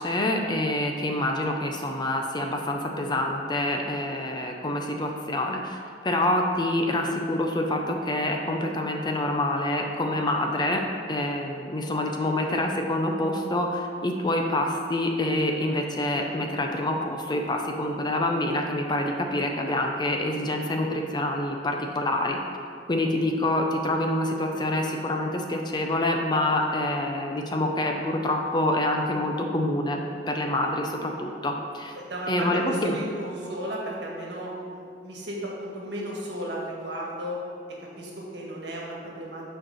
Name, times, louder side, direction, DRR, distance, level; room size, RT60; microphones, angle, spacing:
voice 1, 0.0-10.8 11.1-22.4 22.9-32.0 32.3-33.0, left 1 dB, 25° left, 2 dB, 0.6 m, -26 dB
voice 2, 31.9-37.4 38.0-39.4, equal, 70° right, -3 dB, 1.6 m, -34 dB
6.5 x 4.5 x 6.3 m, 2.3 s
head